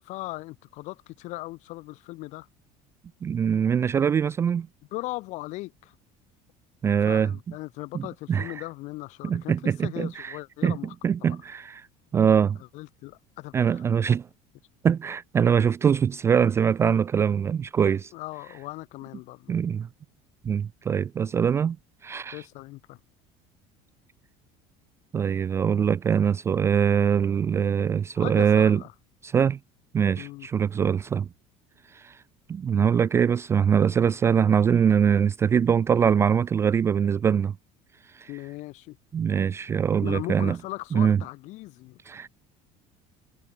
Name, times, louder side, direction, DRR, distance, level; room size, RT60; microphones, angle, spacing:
voice 1, 0.0-2.5 4.9-5.9 7.0-10.9 11.3-11.4 12.7-13.8 18.1-19.5 22.3-23.0 28.2-28.9 30.1-30.5 38.3-39.0 40.0-42.0, left 20 dB, 50° left, 7.9 m, -38 dB
voice 2, 3.2-4.7 6.8-7.3 7.9-8.5 9.2-10.4 10.6-10.8 11.0-11.8 12.1-12.6 13.5-14.3 14.8-18.1 19.5-19.9 20.4-21.8 22.0-22.4 25.1-28.8 29.2-29.6 29.9-31.3 31.9-32.2 32.5-37.5 38.1-38.3 39.1-40.6 40.9-41.2 42.1-42.3, right 7 dB, 15° right, 0.4 m, -23 dB
cardioid pair, 175°, 15 cm